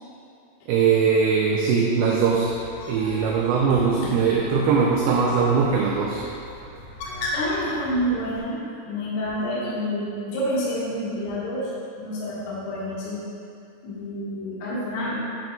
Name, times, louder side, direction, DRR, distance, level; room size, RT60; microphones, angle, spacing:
voice 1, 0.7-2.5 2.9-6.2, right 5 dB, 80° right, -2 dB, 2.3 m, -21 dB
Bird, 2.3-8.4, left 1 dB, 80° left, 2.9 m, -37 dB
voice 2, 7.3-8.6 8.8-11.7 12.0-13.2 13.8-15.2, equal, 55° left, -9 dB, 2.2 m, -28 dB
8.1 x 7.7 x 2.3 m, 2.5 s
omnidirectional pair, 4.8 m